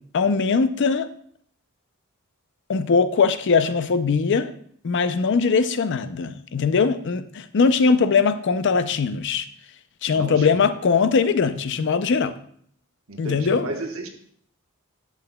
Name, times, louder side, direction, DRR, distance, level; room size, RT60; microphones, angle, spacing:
voice 1, 0.1-1.1 2.7-4.5 4.8-9.5 10.0-12.3 13.2-13.7, left 5 dB, 55° left, 0.5 m, -21 dB
voice 2, 10.1-10.6 13.1-14.1, right 2 dB, 65° right, 1.2 m, -33 dB
11.5 x 7.6 x 2.2 m
head